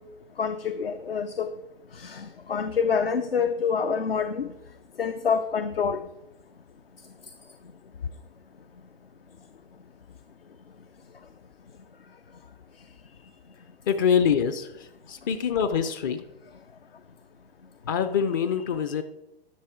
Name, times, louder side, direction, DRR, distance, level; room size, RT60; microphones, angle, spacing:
voice 1, 0.4-1.5 1.9-4.5 5.0-6.0, left 6 dB, 75° left, 9 dB, 0.7 m, -27 dB
voice 2, 13.9-14.7 15.1-16.2 17.9-19.0, left 7 dB, 20° left, 10 dB, 0.4 m, -24 dB
11.5 x 6.6 x 4.7 m, 0.90 s
figure-of-eight pair, 115°, 29 cm